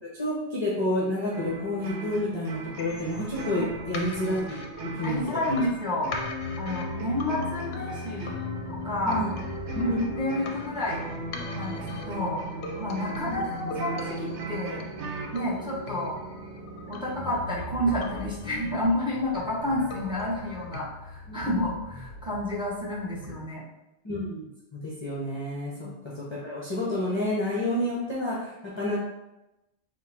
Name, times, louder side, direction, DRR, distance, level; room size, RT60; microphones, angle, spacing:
voice 1, 0.0-5.4 9.0-9.3 9.7-10.0 13.2-13.7 21.3-21.4 24.0-29.0, left 1 dB, 25° left, -7 dB, 0.8 m, -30 dB
sound 1, 1.3-15.4, right 1 dB, 90° right, 1.0 m, -37 dB
sound 2, 2.8-20.8, left 3 dB, 70° left, 0.8 m, -42 dB
voice 2, 5.0-6.1 6.6-8.3 8.7-9.2 10.2-11.1 11.5-12.4 12.8-14.8 15.3-16.2 16.9-23.6 25.7-25.9, left 1 dB, 5° right, -6 dB, 1.1 m, -30 dB
sound 3, 6.4-23.3, left 1 dB, 50° right, 1.7 m, -41 dB
3.7 x 2.5 x 4.4 m, 0.93 s
omnidirectional pair, 1.1 m